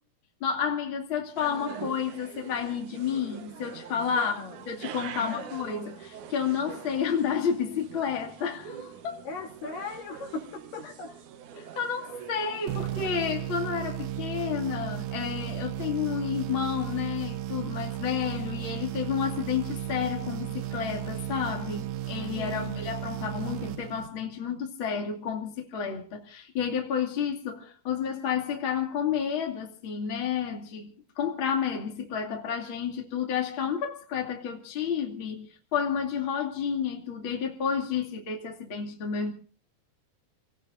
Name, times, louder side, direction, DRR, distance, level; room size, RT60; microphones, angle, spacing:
voice 1, 0.4-4.4 4.7-9.3 11.6-39.3, left 7 dB, 40° left, 2.9 m, -31 dB
sound 1, 1.4-13.1, right 8 dB, 65° right, 2.5 m, -44 dB
voice 2, 4.2-4.6 5.1-5.5 9.2-11.1 22.4-22.8, left 4 dB, 70° left, 4.6 m, -38 dB
sound 2, 12.7-24.4, right 12 dB, 80° right, 3.0 m, -35 dB
29.0 x 18.0 x 2.6 m
omnidirectional pair, 4.0 m